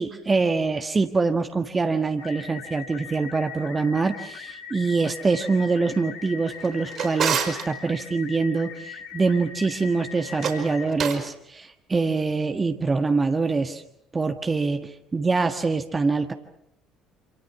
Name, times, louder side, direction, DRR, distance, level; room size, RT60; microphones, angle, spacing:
voice 1, 0.0-13.8 14.1-16.3, right 4 dB, 25° right, 6 dB, 1.6 m, -24 dB
sound 1, 2.2-10.9, left 7 dB, 70° left, 4.1 m, -40 dB
Drawer open or close, 6.5-7.7 10.3-11.3, right 7 dB, 45° right, 4.8 m, -29 dB
28.0 x 27.5 x 5.9 m, 0.75 s
figure-of-eight pair, 55°, 0 cm